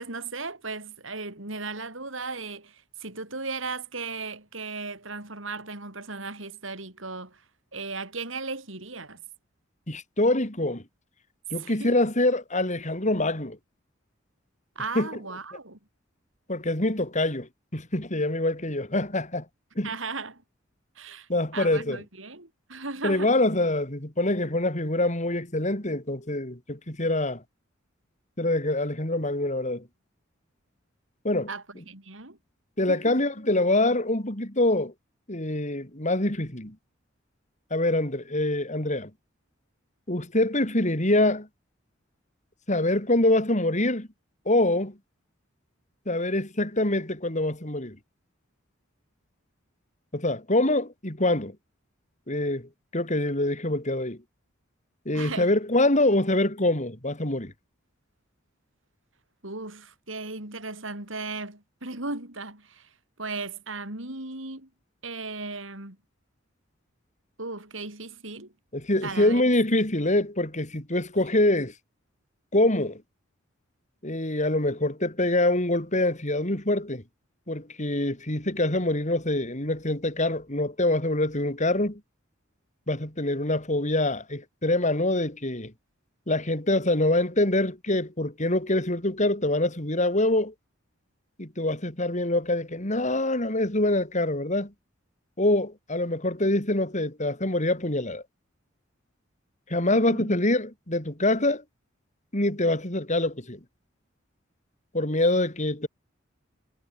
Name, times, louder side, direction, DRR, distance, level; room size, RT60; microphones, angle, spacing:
voice 1, 0.0-7.4 7.7-9.2 11.6-12.0 14.8-15.8 19.8-20.4 21.0-23.3 31.5-32.4 32.9-33.2 55.1-55.5 59.4-62.9 63.2-64.7 65.0-66.0 67.4-68.5 69.0-69.4 99.9-100.3, right 3 dB, 70° right, 6.1 m, -36 dB
voice 2, 9.9-10.8 11.5-13.6 14.9-15.1 16.5-19.4 19.8-19.9 21.3-22.0 23.0-27.4 28.4-29.8 31.2-31.5 32.8-34.9 35.3-36.7 37.7-39.1 40.1-41.5 42.7-44.1 44.4-45.0 46.1-48.0 50.1-51.5 52.3-54.2 55.0-57.5 68.7-71.7 72.5-73.0 74.0-77.0 77.5-82.0 82.9-85.7 86.3-90.5 91.4-94.7 95.4-98.2 99.7-101.6 102.3-103.6 104.9-105.9, left 1 dB, 35° left, 4.9 m, -25 dB
head